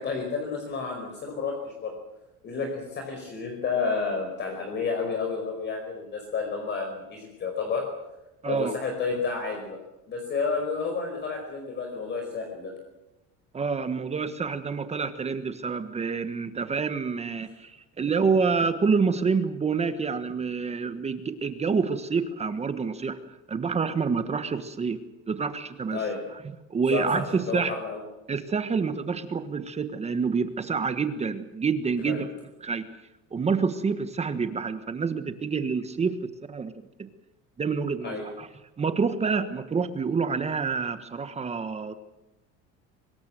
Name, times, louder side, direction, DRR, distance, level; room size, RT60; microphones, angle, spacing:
voice 1, 0.0-1.9 2.4-7.9 8.5-9.8 10.1-12.7 25.9-26.2 26.9-28.0 32.0-32.3 38.0-38.2, left 4 dB, 35° left, 2 dB, 5.1 m, -31 dB
voice 2, 13.5-23.2 23.5-25.0 25.3-26.0 26.7-27.7 28.3-32.3 32.6-32.8 33.3-36.7 37.0-37.1 37.6-38.5 38.8-41.9, right 5 dB, 20° right, 10 dB, 1.4 m, -27 dB
25.0 x 20.5 x 7.7 m, 0.98 s
cardioid pair, 150°, 31 cm